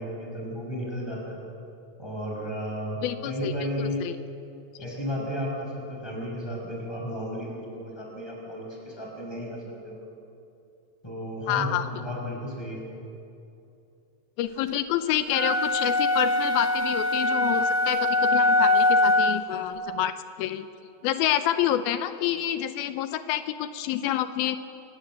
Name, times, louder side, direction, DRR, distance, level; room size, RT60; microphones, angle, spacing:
voice 1, 0.0-1.4 2.0-3.0 3.2-4.0 4.8-10.0 11.0-12.8, equal, 5° left, -2 dB, 6.0 m, -33 dB
voice 2, 3.0-4.2 11.5-11.9 14.4-20.7 21.0-24.6, left 11 dB, 85° left, 10 dB, 2.7 m, -28 dB
sound 1, 15.3-19.6, left 2 dB, 35° right, 0.7 m, -23 dB
26.0 x 20.0 x 7.8 m, 2.7 s
omnidirectional pair, 4.2 m